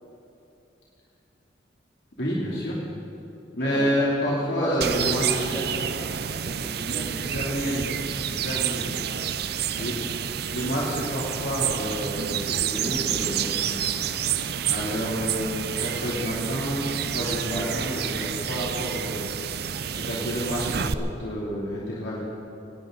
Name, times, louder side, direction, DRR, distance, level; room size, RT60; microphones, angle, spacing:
voice 1, 2.2-2.8 3.6-5.6 6.9-7.9 8.3-8.9 9.8-10.0 10.5-14.1 14.7-22.3, equal, 60° left, -6 dB, 2.9 m, -29 dB
voice 2, 3.6-6.1 6.4-7.5 8.7-9.2 9.7-9.9 17.5-17.7, equal, 15° left, -4 dB, 1.5 m, -35 dB
sound 1, 4.8-20.9, right 8 dB, 55° right, 0.5 m, -29 dB
Rain, 12.8-19.0, equal, 15° right, 1.8 m, -44 dB
19.5 x 18.0 x 3.9 m, 2.8 s
head